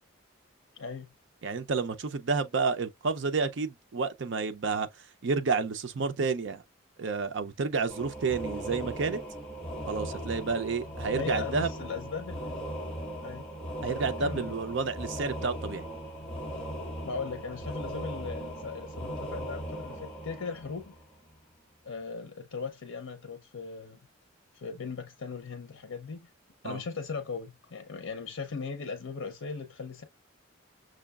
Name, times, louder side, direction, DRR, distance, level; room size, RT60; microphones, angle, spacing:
voice 1, 0.7-1.1 11.1-12.6 13.2-13.4 14.2-14.5 17.0-20.9 21.8-24.0 24.5-26.3 26.6-30.0, left 4 dB, 80° left, 0.6 m, -38 dB
voice 2, 1.4-4.9 5.2-6.6 7.0-9.2 9.9-11.7 13.8-15.8 26.6-26.8, right 4 dB, 60° right, 0.5 m, -30 dB
sound 1, 7.9-21.3, right 1 dB, 5° left, 1.1 m, -38 dB
6.1 x 2.3 x 2.3 m
head